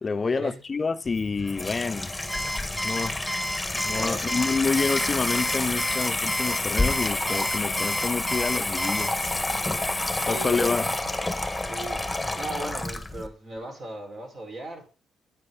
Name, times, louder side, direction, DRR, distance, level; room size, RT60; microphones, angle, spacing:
voice 1, 0.0-2.1 2.8-3.3 3.7-9.3 9.9-10.9, left 4 dB, 30° left, 0.4 m, -28 dB
Water tap faucet / Sink (filling or washing), 1.1-13.3, left 2 dB, 5° left, 1.4 m, -29 dB
Alarm, 2.3-9.1, equal, 10° right, 1.6 m, -31 dB
voice 2, 3.9-4.3 10.1-10.9 11.2-11.3 11.6-12.0 12.3-14.9, right 2 dB, 50° right, 4.8 m, -37 dB
sound 1, 9.3-10.8 12.0-13.1, right 2 dB, 35° right, 5.7 m, -53 dB
9.2 x 9.0 x 3.9 m
cardioid pair, 90°, 0 cm